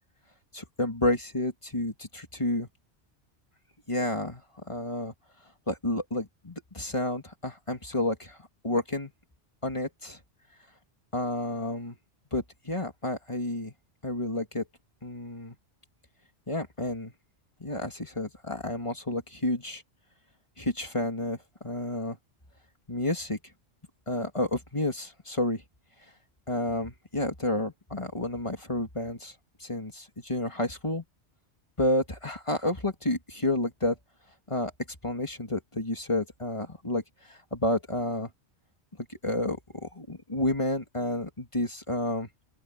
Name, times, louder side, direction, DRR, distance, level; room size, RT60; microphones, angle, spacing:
voice 1, 0.5-2.7 3.9-5.1 5.7-8.4 8.6-9.1 9.6-10.2 11.1-12.0 12.3-13.7 14.0-14.6 15.0-15.6 16.5-17.1 17.6-19.8 20.6-22.2 22.9-23.4 24.1-25.6 26.5-29.3 29.6-31.0 31.8-34.0 34.5-34.7 35.0-37.0 37.3-38.3 39.1-42.3, left 1 dB, 25° left, 2.6 m, -30 dB
open air
omnidirectional pair, 1.1 m